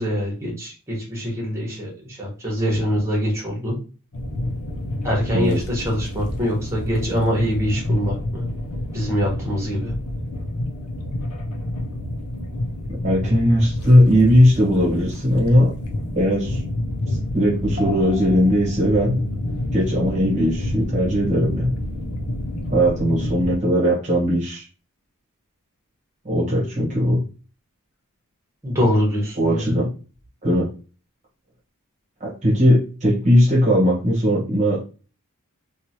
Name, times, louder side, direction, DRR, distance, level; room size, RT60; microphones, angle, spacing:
voice 1, 0.0-3.8 5.0-8.4 8.9-9.9 28.6-29.7, equal, 15° right, -2 dB, 1.1 m, -24 dB
sound 1, 4.1-23.6, left 1 dB, 85° left, 0.6 m, -28 dB
voice 2, 12.9-15.7 16.2-16.6 17.1-19.2 19.7-21.7 22.7-24.6 26.2-27.2 29.4-29.9 30.4-30.7 32.2-34.8, equal, 35° right, -4 dB, 1.0 m, -18 dB
3.0 x 2.4 x 2.7 m, 0.35 s
head